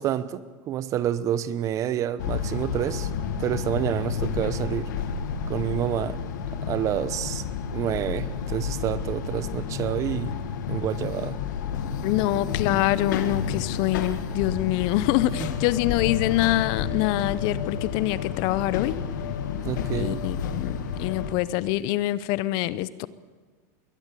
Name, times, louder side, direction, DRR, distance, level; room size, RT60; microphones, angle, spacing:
voice 1, 0.0-3.1 3.4-4.9 5.5-6.2 6.7-7.4 7.7-10.3 10.7-11.4 15.4-15.5 19.6-20.2, right 11 dB, 35° right, 0.9 m, -28 dB
sound 1, 2.2-21.3, left 7 dB, 85° left, 2.0 m, -30 dB
voice 2, 12.0-19.0 19.9-23.1, left 16 dB, 50° left, 0.8 m, -25 dB
22.0 x 18.5 x 8.4 m
supercardioid pair, 145°, 10 cm